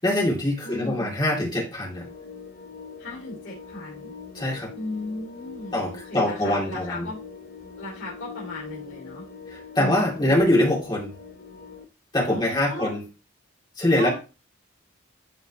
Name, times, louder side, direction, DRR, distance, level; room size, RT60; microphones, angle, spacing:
voice 1, 0.0-2.1 4.3-4.7 5.7-7.1 9.5-11.1 12.1-13.0 13.8-14.1, left 1 dB, 20° left, -3 dB, 2.3 m, -23 dB
voice 2, 0.6-1.1 3.0-4.1 4.7-7.2 7.8-9.2 9.7-10.3 12.3-12.9 14.0-14.1, left 1 dB, 85° left, -6 dB, 2.8 m, -36 dB
sound 1, 1.9-11.8, left 5 dB, 50° left, 0.7 m, -43 dB
12.0 x 4.1 x 2.8 m, 0.31 s
head